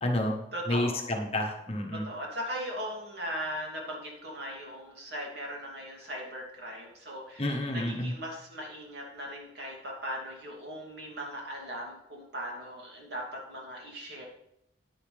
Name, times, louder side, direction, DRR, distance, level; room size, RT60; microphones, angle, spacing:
voice 1, 0.0-0.4 0.7-2.0 7.4-8.1, left 1 dB, 35° left, 2 dB, 1.2 m, -29 dB
voice 2, 0.5-1.1 1.9-14.2, equal, 65° right, -2 dB, 2.8 m, -39 dB
9.6 x 9.5 x 3.4 m, 0.78 s
head